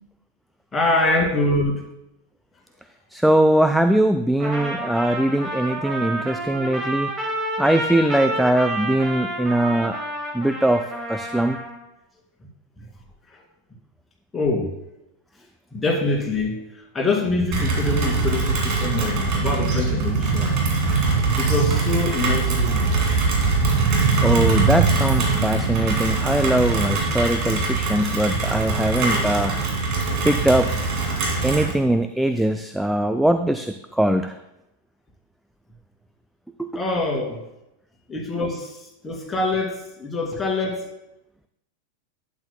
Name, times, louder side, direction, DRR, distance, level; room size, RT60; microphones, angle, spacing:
voice 1, 0.7-1.8 12.8-12.9 13.3-13.4 14.3-14.8 15.7-16.6 16.9-20.5 21.4-22.9 29.0-29.3 36.7-37.4 38.1-40.9, left 2 dB, 15° left, -2 dB, 2.4 m, -25 dB
voice 2, 3.1-7.1 7.6-10.0 10.3-11.6 24.2-29.5 30.2-30.7 31.4-34.4 36.6-36.7, right 1 dB, ahead, 9 dB, 0.3 m, -21 dB
Trumpet, 4.4-11.8, right 1 dB, 20° right, 2.1 m, -29 dB
Rain, 17.5-31.7, right 4 dB, 40° right, 2.4 m, -22 dB
11.5 x 8.8 x 2.2 m, 0.87 s
figure-of-eight pair, 90°, 0 cm